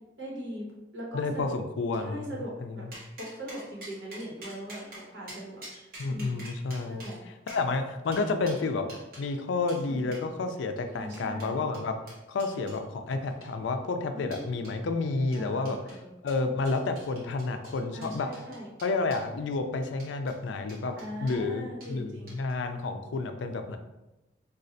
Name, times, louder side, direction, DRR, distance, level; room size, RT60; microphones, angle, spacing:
voice 1, 0.2-0.7 0.9-1.5 2.0-2.8 3.2-4.8 5.1-6.5 6.9-7.2 10.9-11.6 14.1-14.9 15.3-16.1 17.9-18.7 21.0-22.3, equal, 80° right, -4 dB, 1.1 m, -40 dB
voice 2, 1.1-2.9 6.0-8.9 9.2-11.9 12.3-15.8 16.2-18.3 18.8-20.9 21.2-23.8, left 3 dB, 80° left, 7 dB, 0.4 m, -30 dB
sound 1, 2.9-9.3 9.7-9.8 10.1-10.3 10.8-12.8 13.3-13.7 14.3-14.8 15.3-16.0 16.3-19.3 19.9-20.4 20.7-21.4 21.8-21.9 22.3-22.6, right 1 dB, 50° right, 1.1 m, -47 dB
4.1 x 2.4 x 2.5 m, 1.0 s
head